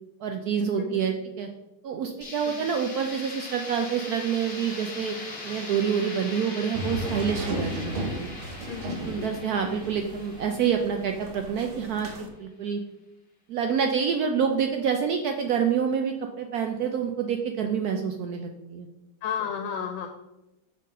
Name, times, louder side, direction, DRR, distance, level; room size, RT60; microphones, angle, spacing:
voice 1, 0.2-1.5 1.8-5.2 5.4-8.3 9.0-12.8 13.5-18.9, right 7 dB, 75° right, 4 dB, 0.9 m, -27 dB
voice 2, 0.8-1.2 2.4-2.7 8.7-9.3 19.2-20.1, left 7 dB, 80° left, 5 dB, 1.4 m, -33 dB
sound 1, 2.2-12.0, left 2 dB, 35° left, 1.3 m, -41 dB
sound 2, 6.7-12.3, equal, 90° right, 0.5 m, -35 dB
6.3 x 3.8 x 5.4 m, 0.96 s
omnidirectional pair, 2.1 m